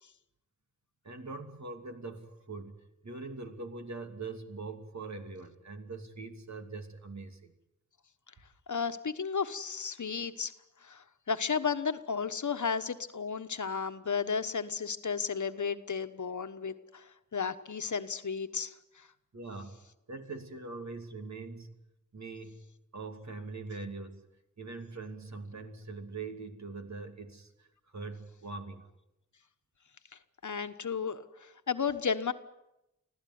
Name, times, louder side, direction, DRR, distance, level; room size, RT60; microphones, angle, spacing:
voice 1, 1.0-2.8 3.0-7.5 19.3-19.8 20.1-21.8 22.1-24.3 24.6-27.7 27.9-28.8, right 3 dB, 60° right, 6 dB, 2.6 m, -42 dB
voice 2, 8.7-10.5 10.8-17.0 17.3-18.7 30.4-32.3, left 6 dB, 70° left, 10 dB, 1.3 m, -33 dB
25.0 x 16.0 x 9.5 m, 0.89 s
wide cardioid pair, 85°, 31 cm